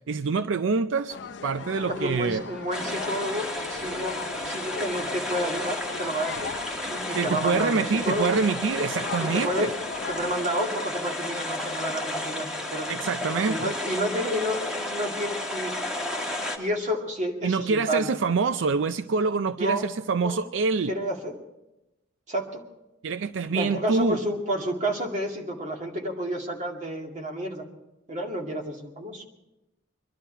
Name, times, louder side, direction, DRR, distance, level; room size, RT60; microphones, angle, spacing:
voice 1, 0.1-1.2 1.4-2.4 7.1-9.7 12.9-13.7 17.4-20.9 23.0-24.2, right 4 dB, 80° right, 12 dB, 0.5 m, -26 dB
sound 1, 1.1-10.5, left 5 dB, 65° left, 0.5 m, -39 dB
voice 2, 1.9-6.5 6.9-8.4 8.9-9.7 10.1-12.9 13.5-15.7 16.6-18.1 19.6-19.9 20.2-20.4 20.9-21.4 22.3-22.6 23.5-27.6 28.1-29.3, equal, 40° right, 1 dB, 2.2 m, -30 dB
sound 2, 2.7-16.6, left 1 dB, 5° right, 1.7 m, -32 dB
24.0 x 12.0 x 4.5 m, 0.94 s
head